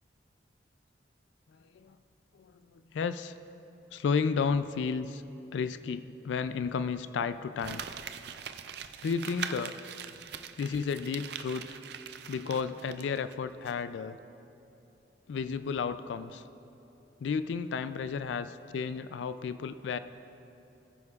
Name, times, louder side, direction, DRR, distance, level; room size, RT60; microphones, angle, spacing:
voice 1, 2.3-3.3 3.9-5.2 5.5-7.8 9.0-9.8 10.6-11.8 12.3-14.2 15.3-16.4 17.2-20.0, left 5 dB, 75° left, 12 dB, 0.3 m, -32 dB
Crumpling crinkling, 7.6-13.3 13.7-13.8, right 8 dB, 60° right, 0.4 m, -42 dB
19.5 x 9.5 x 2.4 m, 2.9 s
head